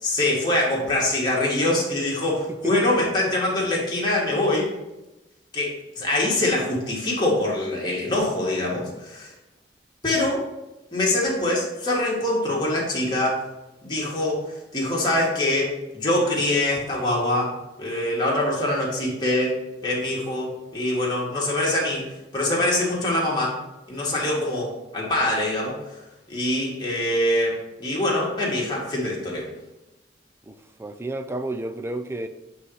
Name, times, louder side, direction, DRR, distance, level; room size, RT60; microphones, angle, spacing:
voice 1, 0.0-4.7 5.5-9.3 10.0-10.5 10.9-13.4 13.8-14.4 14.7-17.5 17.8-19.5 19.8-22.1 22.3-23.6 23.9-25.8 26.3-29.5, left 1 dB, 25° left, 2.1 m, -24 dB
voice 2, 30.5-32.3, right 2 dB, 15° right, 0.4 m, -31 dB
8.1 x 4.0 x 4.8 m
head